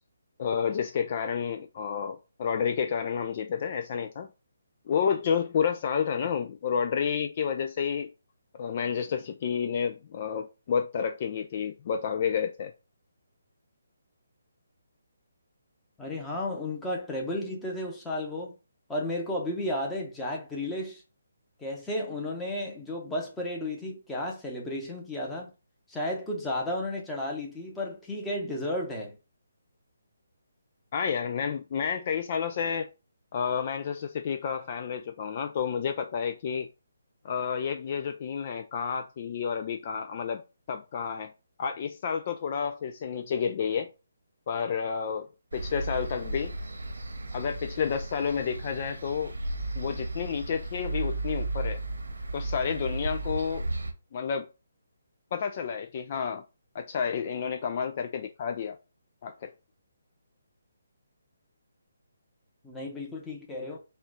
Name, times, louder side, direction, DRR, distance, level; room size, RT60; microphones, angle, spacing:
voice 1, 0.4-4.3 4.9-8.1 8.5-12.7 30.9-32.9 33.3-36.7 37.2-40.4 40.7-41.3 41.6-43.9 44.5-46.5 47.3-49.3 49.8-51.8 52.3-53.7 54.1-54.5 55.3-56.4 56.7-58.8 59.2-59.5, left 7 dB, 40° left, 0.4 m, -30 dB
voice 2, 16.0-18.5 18.9-21.0 21.6-25.5 25.9-29.2 62.6-63.8, left 1 dB, 5° left, 1.0 m, -33 dB
sound 1, 45.5-53.9, right 2 dB, 90° right, 1.1 m, -34 dB
4.2 x 2.4 x 3.8 m
hypercardioid pair, 160°, 0 cm